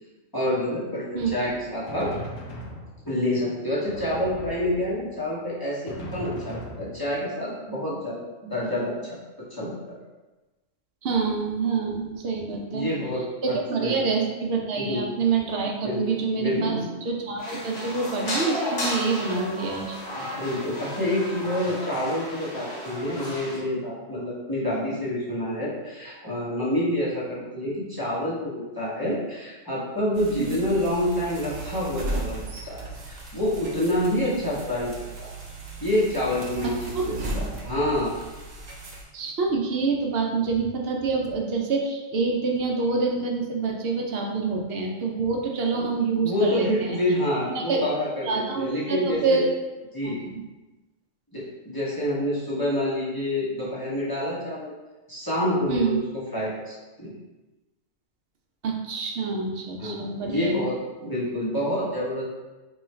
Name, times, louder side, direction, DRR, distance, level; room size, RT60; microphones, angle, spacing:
voice 1, 0.3-2.1 3.1-9.2 9.5-10.0 12.5-14.1 14.8-15.0 15.8-16.0 16.4-17.0 20.2-34.9 35.2-35.3 35.8-38.1 46.2-49.4 49.9-50.2 51.3-54.7 55.1-57.1 59.8-62.2, left 1 dB, 20° left, -8 dB, 0.7 m, -28 dB
Drum, 1.4-3.3 3.9-5.2 5.9-7.4, equal, 85° left, 1.0 m, -39 dB
voice 2, 11.0-12.9 13.4-16.7 17.0-20.0 30.4-30.5 37.0-37.2 39.1-47.0 47.5-47.9 48.2-49.5 50.0-50.4 55.7-56.0 58.6-60.6, right 4 dB, 60° right, 0 dB, 0.7 m, -26 dB
sound 1, 17.4-23.6, left 1 dB, 60° left, 1.1 m, -33 dB
sound 2, 30.1-39.0, right 2 dB, 85° right, 1.1 m, -36 dB
3.0 x 2.3 x 4.2 m, 1.1 s
omnidirectional pair, 1.3 m